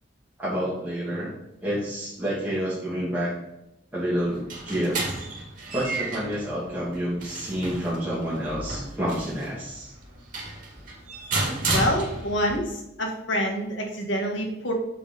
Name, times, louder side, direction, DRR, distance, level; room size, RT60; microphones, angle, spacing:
voice 1, 0.4-1.3 1.6-3.4 3.9-5.1 5.7-9.9, equal, 10° right, -9 dB, 2.0 m, -29 dB
sound 1, 4.2-12.6, right 2 dB, 45° right, 2.2 m, -32 dB
voice 2, 11.7-14.7, equal, 80° left, 2 dB, 1.8 m, -27 dB
6.9 x 5.4 x 5.2 m, 0.89 s
head